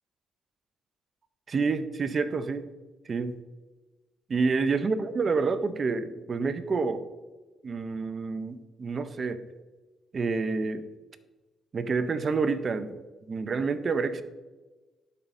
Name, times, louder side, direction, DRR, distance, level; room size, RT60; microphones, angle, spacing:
voice 1, 1.5-2.7 3.1-3.4 4.3-7.0 7.6-9.4 10.1-10.9 11.7-13.0 13.3-14.2, right 4 dB, 40° right, 11 dB, 0.6 m, -28 dB
12.0 x 5.5 x 2.6 m, 1.2 s
cardioid pair, 90°, 0 cm